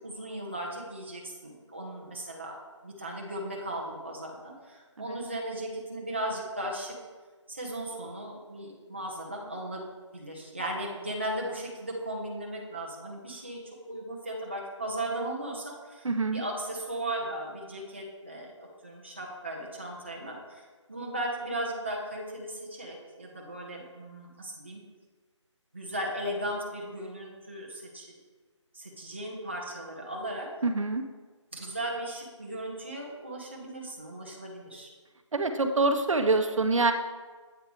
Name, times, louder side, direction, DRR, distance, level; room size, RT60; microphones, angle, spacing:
voice 1, 0.0-2.6 2.8-6.9 7.5-9.8 10.1-13.6 13.9-20.6 20.9-24.8 25.7-28.2 28.7-30.5 31.5-34.9, right 1 dB, 25° right, -2 dB, 0.6 m, -36 dB
voice 2, 16.0-16.4 30.6-31.0 35.3-36.9, right 3 dB, 85° right, 7 dB, 0.6 m, -25 dB
7.8 x 3.4 x 4.5 m, 1.4 s
figure-of-eight pair, 180°, 16 cm